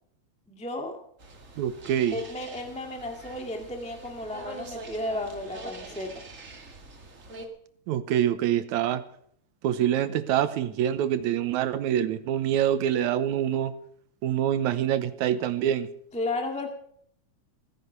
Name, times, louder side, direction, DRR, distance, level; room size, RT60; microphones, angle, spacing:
voice 1, 0.5-1.0 2.1-6.1 16.1-16.7, left 2 dB, 5° left, 3 dB, 1.4 m, -33 dB
sound 1, 1.2-7.5, right 2 dB, 30° right, 1.7 m, -44 dB
voice 2, 1.6-2.2 7.9-9.0 9.6-13.7 14.2-15.9, right 10 dB, 80° right, 12 dB, 2.3 m, -25 dB
16.5 x 9.9 x 6.8 m, 0.65 s
omnidirectional pair, 3.4 m